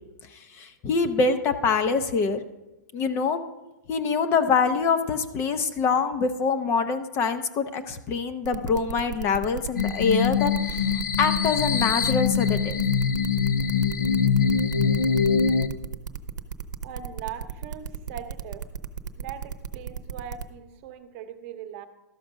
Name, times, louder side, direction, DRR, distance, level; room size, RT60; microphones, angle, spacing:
voice 1, 0.3-2.4 2.9-3.4 3.9-10.8 11.2-12.8, left 5 dB, 25° left, 9 dB, 0.5 m, -25 dB
sound 1, 8.4-20.4, right 8 dB, 75° right, 0.8 m, -34 dB
sound 2, 9.8-15.7, left 6 dB, 90° left, 0.6 m, -23 dB
voice 2, 16.8-18.7 19.2-21.9, right 9 dB, 40° right, 7 dB, 0.9 m, -40 dB
12.5 x 5.0 x 6.2 m, 1.0 s
hypercardioid pair, 145°, 10 cm